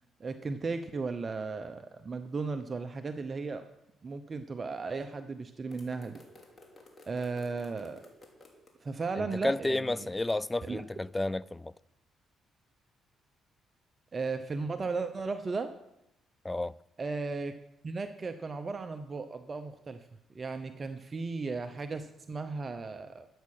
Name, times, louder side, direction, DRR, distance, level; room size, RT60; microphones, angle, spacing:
voice 1, 0.2-3.6 4.0-6.2 7.1-8.0 8.8-10.1 10.6-10.8 14.1-15.7 17.0-17.5 17.8-20.1 20.3-23.3, right 4 dB, 35° right, 0.8 m, -35 dB
sound 1, 5.7-8.7, left 2 dB, 30° left, 2.9 m, -55 dB
voice 2, 9.2-11.7 16.4-16.7, left 2 dB, 15° left, 0.4 m, -31 dB
12.5 x 8.6 x 6.6 m
cardioid pair, 90°, 0 cm